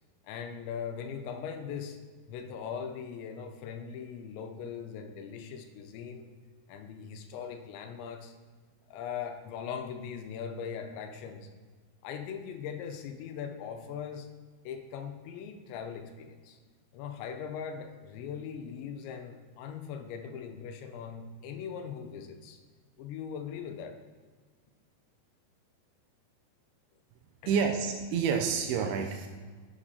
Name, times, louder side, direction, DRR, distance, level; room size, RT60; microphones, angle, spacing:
voice 1, 0.3-2.0 2.3-6.3 6.7-8.3 8.9-11.5 12.0-14.3 14.7-16.6 16.9-22.6 23.0-24.0 27.4-27.7, left 7 dB, 90° left, 6 dB, 3.0 m, -40 dB
voice 2, 27.5-29.3, right 6 dB, 90° right, 4 dB, 2.2 m, -28 dB
10.0 x 7.9 x 2.8 m, 1.5 s
omnidirectional pair, 5.1 m